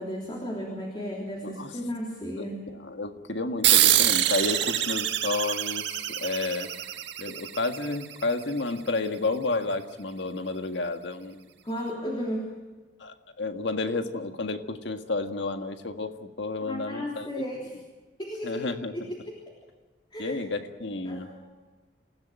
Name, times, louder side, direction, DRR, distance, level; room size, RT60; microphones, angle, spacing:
voice 1, 0.0-2.6 7.3-7.4 11.6-12.5 16.7-17.7 18.2-19.4 20.1-20.5 21.0-21.5, equal, 25° left, -1 dB, 3.3 m, -34 dB
voice 2, 2.4-6.7 7.2-11.5 13.0-17.4 18.4-18.9 20.2-21.3, left 3 dB, 70° left, 7 dB, 1.8 m, -31 dB
sound 1, 3.6-8.6, right 12 dB, 70° right, 1.6 m, -25 dB
27.5 x 15.5 x 9.1 m, 1.3 s
head